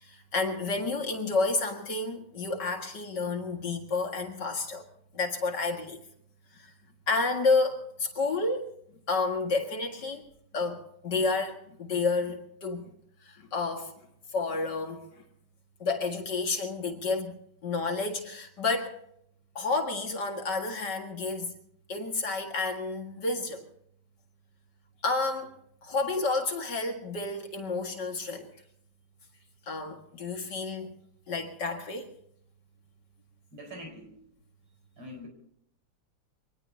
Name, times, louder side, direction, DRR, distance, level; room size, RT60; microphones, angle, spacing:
voice 1, 0.0-4.8 5.1-6.0 6.5-6.7 7.1-8.7 9.1-10.3 10.5-12.8 13.2-13.9 14.3-15.2 15.8-19.0 19.6-21.5 21.9-23.7 25.0-25.5 25.8-28.5 29.7-30.9 31.3-32.1, left 3 dB, 50° left, 3 dB, 2.4 m, -30 dB
voice 2, 33.5-34.2 35.0-35.3, left 1 dB, 70° right, 2 dB, 5.7 m, -43 dB
25.0 x 19.5 x 2.8 m, 0.71 s
omnidirectional pair, 2.4 m